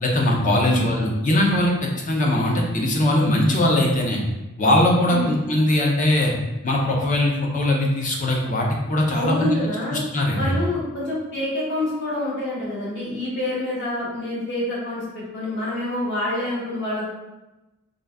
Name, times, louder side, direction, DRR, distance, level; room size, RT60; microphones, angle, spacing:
voice 1, 0.0-4.2 4.6-6.3 6.6-9.6 9.9-10.5, left 1 dB, 35° left, -1 dB, 0.6 m, -20 dB
voice 2, 9.1-10.0 10.3-17.0, left 1 dB, 55° left, -8 dB, 1.5 m, -27 dB
3.9 x 2.4 x 3.4 m, 1.0 s
head